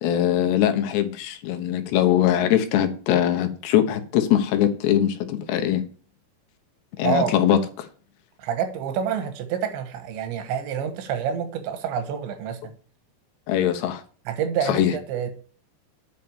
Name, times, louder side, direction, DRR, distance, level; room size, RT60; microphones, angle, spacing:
voice 1, 0.0-5.8 7.0-7.9 13.5-14.0 14.7-14.9, left 10 dB, 75° left, 3.1 m, -22 dB
voice 2, 7.0-7.3 8.4-12.8 14.3-15.3, right 8 dB, 90° right, 3.7 m, -27 dB
8.8 x 5.6 x 7.2 m
omnidirectional pair, 5.0 m